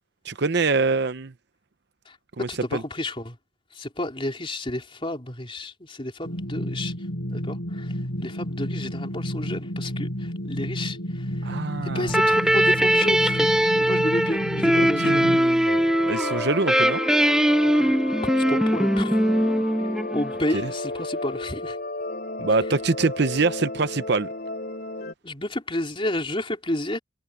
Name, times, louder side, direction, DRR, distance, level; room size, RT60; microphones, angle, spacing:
voice 1, 0.2-1.3 2.4-2.8 11.4-12.2 14.7-17.0 20.5-20.7 22.4-24.3, right 4 dB, 60° right, 0.8 m, -25 dB
voice 2, 2.5-3.4 3.8-6.9 7.3-7.9 8.2-10.1 10.5-11.0 11.8-15.3 18.4-19.2 20.1-21.8 25.2-27.0, left 1 dB, 25° left, 3.6 m, -31 dB
sound 1, 6.2-15.4, equal, 65° left, 5.4 m, -31 dB
sound 2, 12.1-20.6, equal, 5° right, 0.5 m, -21 dB
sound 3, 15.7-25.1, left 2 dB, 50° left, 3.5 m, -33 dB
head